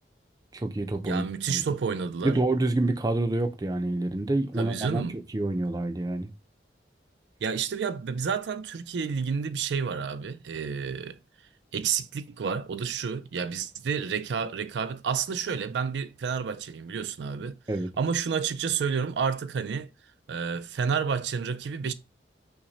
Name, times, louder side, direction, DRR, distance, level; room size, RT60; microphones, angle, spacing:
voice 1, 0.5-1.6 2.2-5.0 5.3-6.3 17.7-17.9, right 2 dB, 20° right, 0.5 m, -27 dB
voice 2, 1.0-2.4 4.6-5.2 7.4-11.2 11.7-17.6 18.0-19.9 20.3-21.9, right 6 dB, 80° right, 0.4 m, -30 dB
5.8 x 2.1 x 3.9 m
head